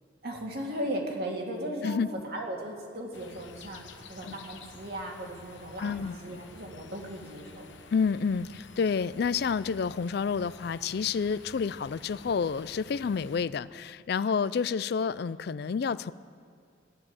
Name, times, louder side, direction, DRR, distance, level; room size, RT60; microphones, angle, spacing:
voice 1, 0.2-2.0 2.2-3.8 4.1-7.7, right 1 dB, 55° right, 0 dB, 2.2 m, -37 dB
sound 1, 3.1-13.4, left 4 dB, 85° left, 1.0 m, -50 dB
voice 2, 5.8-6.2 7.9-16.1, left 6 dB, 60° left, 17 dB, 0.4 m, -29 dB
15.0 x 11.0 x 7.2 m, 2.3 s
head